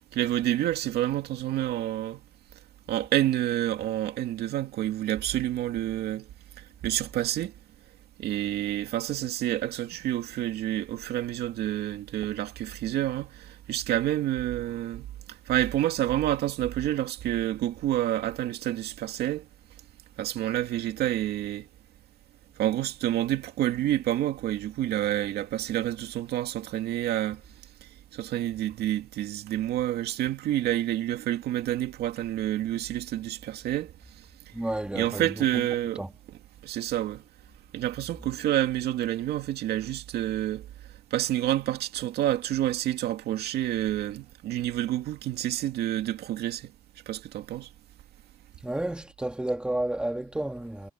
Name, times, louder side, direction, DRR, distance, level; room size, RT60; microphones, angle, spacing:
voice 1, 0.1-2.2 2.9-6.2 6.8-7.5 8.2-15.1 15.5-19.4 20.2-21.7 22.6-27.4 28.1-33.9 34.9-36.0 36.6-37.2 37.7-40.6 41.1-46.7 47.1-47.7, right 13 dB, 70° right, 2.4 m, -28 dB
voice 2, 34.5-35.6 36.0-36.1 48.6-50.9, right 1 dB, 5° right, 2.1 m, -31 dB
cardioid pair, 110°, 17 cm